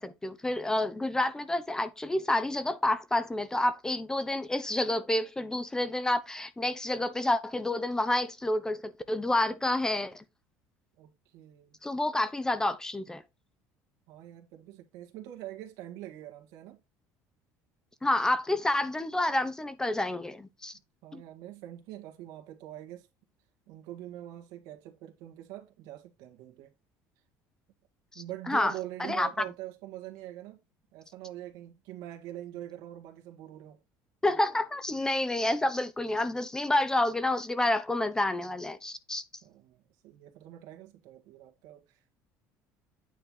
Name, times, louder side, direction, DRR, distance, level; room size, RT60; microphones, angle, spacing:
voice 1, 0.0-10.2 11.8-13.2 18.0-20.7 21.1-21.2 28.5-28.7 29.0-29.3 34.2-39.2, left 1 dB, 10° left, 0.8 m, -29 dB
voice 2, 11.0-11.8 14.1-16.8 21.0-23.1 23.7-26.7 28.2-30.6 30.9-33.8 39.4-42.1, right 13 dB, 75° right, 1.8 m, -44 dB
9.3 x 4.5 x 3.7 m
cardioid pair, 130°, 7 cm